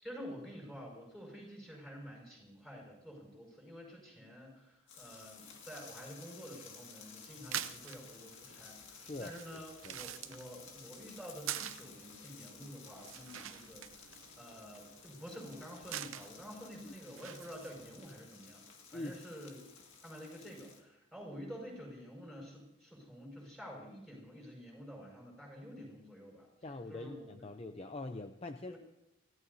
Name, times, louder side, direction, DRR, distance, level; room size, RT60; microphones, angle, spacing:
voice 1, 0.0-13.9 14.4-18.6 18.9-19.6 20.0-26.5 26.9-27.5 28.7-28.8, equal, ahead, -1 dB, 5.5 m, -49 dB
sound 1, 4.9-20.8, left 5 dB, 60° left, 2.1 m, -55 dB
sound 2, 7.3-18.1, right 11 dB, 70° right, 0.7 m, -47 dB
voice 2, 9.0-9.4 9.8-10.0 16.8-16.9 18.9-19.2 26.6-28.7, left 2 dB, 30° left, 7 dB, 0.5 m, -43 dB
28.0 x 15.5 x 2.7 m, 0.89 s
head